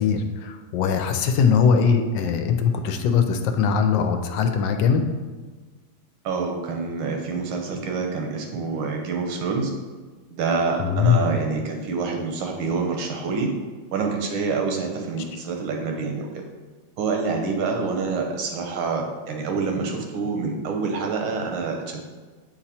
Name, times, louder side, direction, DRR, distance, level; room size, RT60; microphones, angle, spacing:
voice 1, 0.0-5.0 10.8-11.3, left 6 dB, 75° left, 6 dB, 1.1 m, -21 dB
voice 2, 6.3-9.7 10.3-13.5 13.9-16.3 17.0-22.1, right 4 dB, 85° right, 2 dB, 1.7 m, -27 dB
8.1 x 3.0 x 4.2 m, 1.4 s
omnidirectional pair, 2.2 m